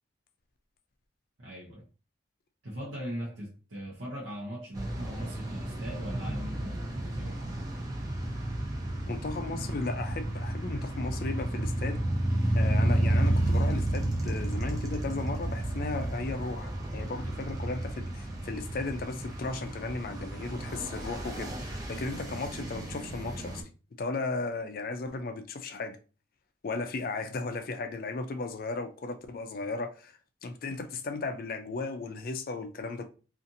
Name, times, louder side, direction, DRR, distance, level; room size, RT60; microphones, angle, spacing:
voice 1, 1.4-1.8 2.6-7.4, equal, 80° right, 0.8 m, -40 dB
sound 1, 4.7-23.6, right 1 dB, 20° right, 0.4 m, -32 dB
voice 2, 9.1-12.0 12.5-23.6 24.0-26.0 26.6-33.1, left 3 dB, 50° left, 0.4 m, -35 dB
2.7 x 2.4 x 2.6 m
head